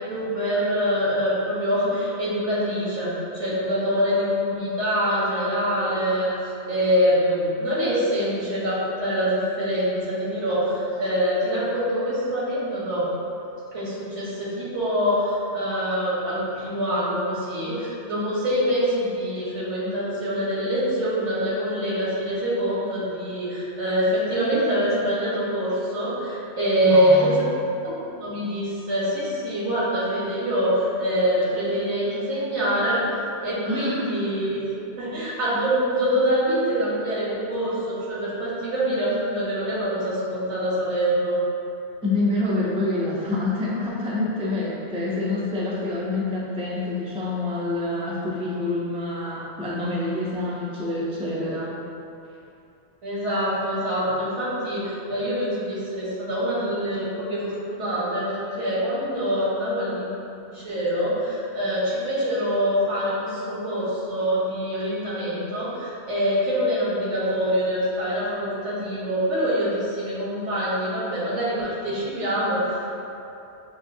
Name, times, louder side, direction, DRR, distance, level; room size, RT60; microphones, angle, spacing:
voice 1, 0.1-6.3 6.7-13.1 13.7-27.5 27.8-33.0 33.4-34.6 35.0-41.4 53.0-60.1 60.5-73.0, equal, 90° right, -8 dB, 1.5 m, -25 dB
voice 2, 26.8-27.5 33.6-34.2 42.0-51.7, left 2 dB, 10° right, -6 dB, 0.3 m, -27 dB
7.1 x 2.4 x 2.6 m, 2.8 s
omnidirectional pair, 1.2 m